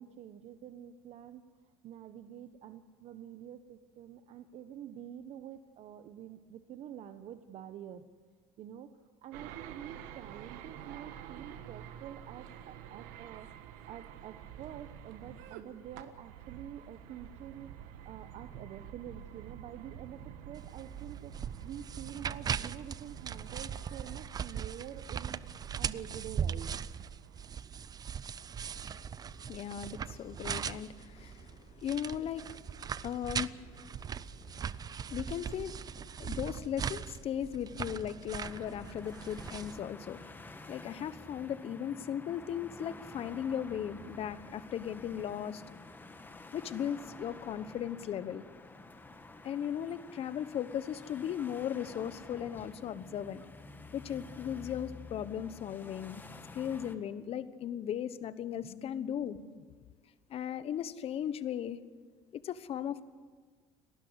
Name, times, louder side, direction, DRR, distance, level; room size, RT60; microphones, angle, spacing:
voice 1, 0.0-1.4 1.8-8.0 8.6-8.9 9.2-21.3 21.6-25.4 25.8-26.7, right 10 dB, 55° right, 9 dB, 1.0 m, -47 dB
sound 1, 9.3-27.6, right 10 dB, 85° right, 1.4 m, -49 dB
sound 2, 20.5-39.8, right 7 dB, 30° right, 0.5 m, -40 dB
voice 2, 28.6-40.4 40.7-45.6 46.5-48.4 49.4-53.4 53.9-56.2 56.5-59.6 60.3-61.8 62.3-63.1, left 9 dB, 50° left, 14 dB, 1.1 m, -37 dB
sound 3, 38.4-57.0, left 2 dB, 15° left, 1.6 m, -50 dB
30.0 x 12.5 x 8.1 m, 1.6 s
cardioid pair, 115°, 13 cm